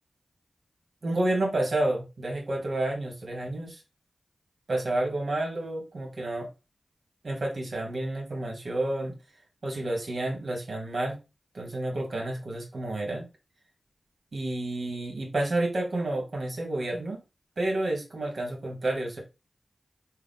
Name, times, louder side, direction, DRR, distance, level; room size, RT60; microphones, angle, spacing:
voice 1, 1.0-3.8 4.7-6.5 7.2-9.1 9.6-11.2 11.5-13.3 14.3-17.2 17.6-19.2, right 1 dB, 70° right, 0 dB, 1.6 m, -30 dB
3.7 x 2.3 x 3.7 m, 0.27 s
cardioid pair, 40°, 0 cm